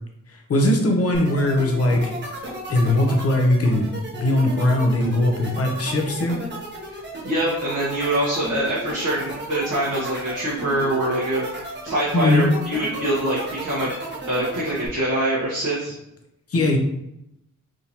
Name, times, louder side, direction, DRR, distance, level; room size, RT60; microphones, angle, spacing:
voice 1, 0.3-2.1 2.7-3.9 4.1-6.4 12.1-12.5 16.5-16.8, left 1 dB, 50° left, 2 dB, 0.7 m, -20 dB
sound 1, 1.1-14.9, right 1 dB, 35° right, 0.9 m, -34 dB
voice 2, 7.2-13.9 14.3-15.9, right 1 dB, 65° right, -8 dB, 1.0 m, -24 dB
3.5 x 2.7 x 2.8 m, 0.83 s
wide cardioid pair, 125°, 32 cm